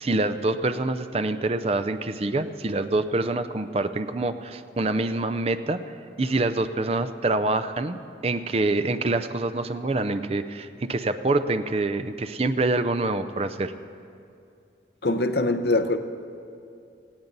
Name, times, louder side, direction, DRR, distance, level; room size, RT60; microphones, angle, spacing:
voice 1, 0.0-5.9 6.2-13.7, right 2 dB, 35° right, 11 dB, 0.5 m, -26 dB
voice 2, 15.0-16.0, left 2 dB, 65° left, 9 dB, 0.7 m, -23 dB
19.0 x 16.0 x 4.0 m, 2.5 s
head